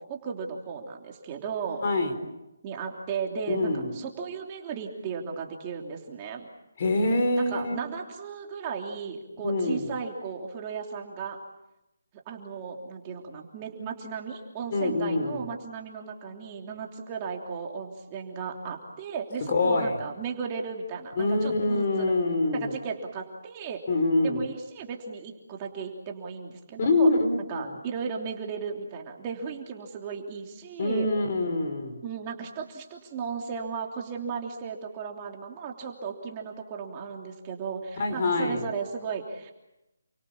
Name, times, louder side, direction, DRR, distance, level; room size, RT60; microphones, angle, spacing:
voice 1, 0.0-1.8 2.6-6.5 7.3-11.4 12.3-22.1 22.5-23.8 24.2-27.1 27.5-31.1 32.0-39.5, right 6 dB, 20° right, 1 dB, 3.1 m, -35 dB
voice 2, 1.8-2.3 3.5-3.9 6.8-7.7 9.4-9.9 14.7-15.4 19.5-19.9 21.2-22.7 23.9-24.4 26.8-27.7 30.8-32.0 38.0-38.7, left 2 dB, 40° left, 5 dB, 4.9 m, -25 dB
29.5 x 24.0 x 7.2 m, 0.94 s
hypercardioid pair, 165°, 0 cm